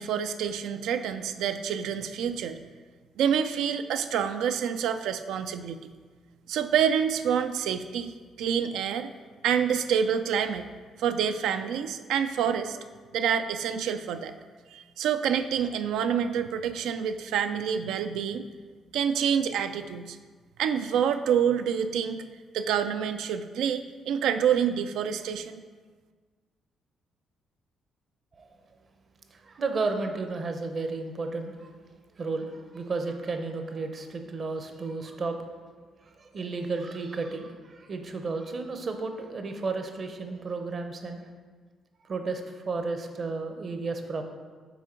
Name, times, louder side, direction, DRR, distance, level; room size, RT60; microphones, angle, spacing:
voice 1, 0.0-2.6 3.2-5.8 6.5-9.1 9.4-10.7 11.0-12.8 13.1-14.3 14.7-18.4 18.9-20.2 20.6-22.2 22.5-25.6, right 8 dB, 85° right, 9 dB, 0.3 m, -27 dB
voice 2, 29.3-31.7 32.2-35.4 36.0-41.3 42.0-44.2, right 3 dB, 45° right, 6 dB, 0.7 m, -33 dB
6.2 x 3.8 x 4.4 m, 1.5 s
cardioid pair, 90°, 0 cm